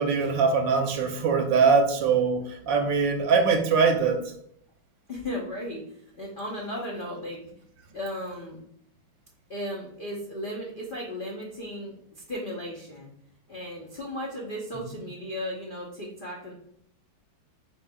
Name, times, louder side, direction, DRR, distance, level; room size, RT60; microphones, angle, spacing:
voice 1, 0.0-4.2, right 5 dB, 75° right, 5 dB, 1.3 m, -22 dB
voice 2, 5.1-5.9 6.2-7.4 7.9-8.6 9.5-13.1 13.5-16.5, equal, 85° left, -3 dB, 0.4 m, -35 dB
4.5 x 4.3 x 2.2 m, 0.69 s
omnidirectional pair, 2.2 m